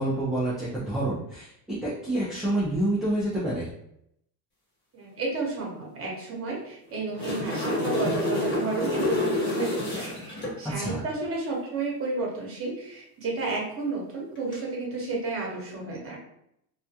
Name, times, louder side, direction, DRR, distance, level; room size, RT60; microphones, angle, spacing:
voice 1, 0.0-3.7 10.6-11.0, right 1 dB, ahead, -9 dB, 0.4 m, -28 dB
voice 2, 4.9-16.2, right 3 dB, 30° right, -2 dB, 1.0 m, -32 dB
sound 1, 6.9-10.5 14.4-14.5, left 1 dB, 25° left, 1.1 m, -28 dB
2.4 x 2.1 x 2.8 m, 0.76 s
supercardioid pair, 115°, 47 cm